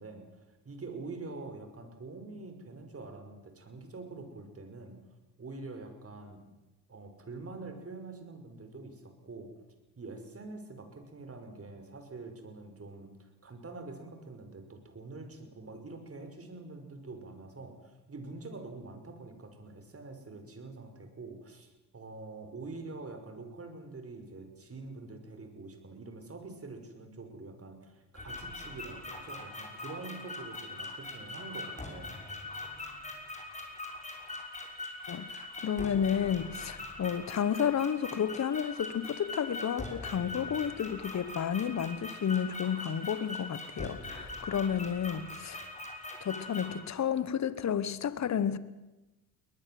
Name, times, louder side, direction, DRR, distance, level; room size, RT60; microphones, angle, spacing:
voice 1, 0.0-5.0 5.4-6.5 6.9-9.5 10.0-32.2, right 3 dB, 35° right, 5.7 m, -45 dB
sound 1, 28.1-46.8, left 2 dB, 15° left, 6.1 m, -42 dB
voice 2, 35.1-45.7 46.2-48.6, left 8 dB, 40° left, 1.4 m, -31 dB
21.5 x 19.5 x 7.9 m
supercardioid pair, 70°, 41 cm